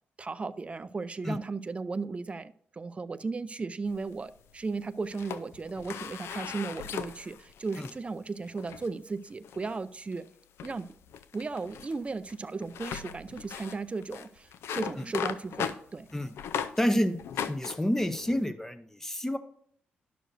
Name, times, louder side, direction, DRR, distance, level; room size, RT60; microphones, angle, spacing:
voice 1, 0.2-10.3 10.6-10.9 11.3-16.1, right 4 dB, 30° right, 12 dB, 0.4 m, -36 dB
sound 1, 3.9-4.6 5.0-8.0 8.5-8.9 9.4-9.8 10.1-10.3 10.6-16.8 17.2-18.4, left 8 dB, 80° left, 0.4 m, -38 dB
voice 2, 16.8-17.2 17.5-19.4, equal, 10° left, 10 dB, 0.7 m, -28 dB
10.0 x 6.4 x 2.6 m, 0.62 s
supercardioid pair, 55°, 4 cm